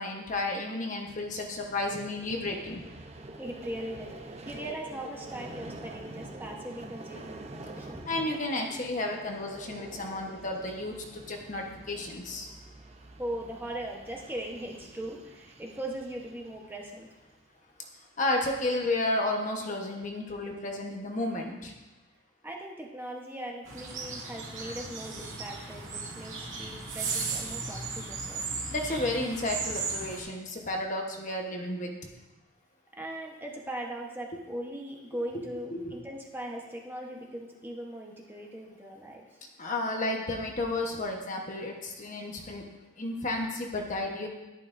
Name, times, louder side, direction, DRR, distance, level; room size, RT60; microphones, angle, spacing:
voice 1, 0.0-2.8 7.8-12.5 18.2-21.7 28.7-31.9 35.7-36.0 39.6-42.7 43.0-44.3, left 2 dB, 40° left, 1 dB, 1.1 m, -32 dB
Vehicle, 1.1-17.4, right 2 dB, 30° right, 0.7 m, -47 dB
voice 2, 3.4-8.0 8.4-8.5 13.2-17.1 22.4-28.4 32.9-39.2, right 1 dB, 10° right, -1 dB, 1.0 m, -39 dB
sound 1, 23.6-30.2, right 4 dB, 90° right, 2.2 m, -36 dB
11.5 x 11.0 x 2.6 m, 1.1 s
head